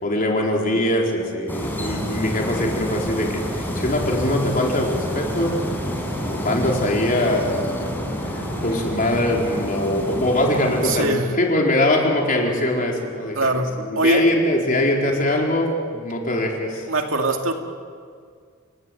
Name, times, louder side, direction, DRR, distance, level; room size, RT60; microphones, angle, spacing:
voice 1, 0.0-5.6 6.3-7.7 8.6-16.8, left 1 dB, 40° left, 0 dB, 4.3 m, -22 dB
sound 1, 1.5-11.1, equal, 10° left, 5.0 m, -28 dB
voice 2, 10.8-11.3 13.3-14.3 16.9-17.5, right 2 dB, 75° right, 3 dB, 2.4 m, -22 dB
29.5 x 18.0 x 8.0 m, 2.1 s
head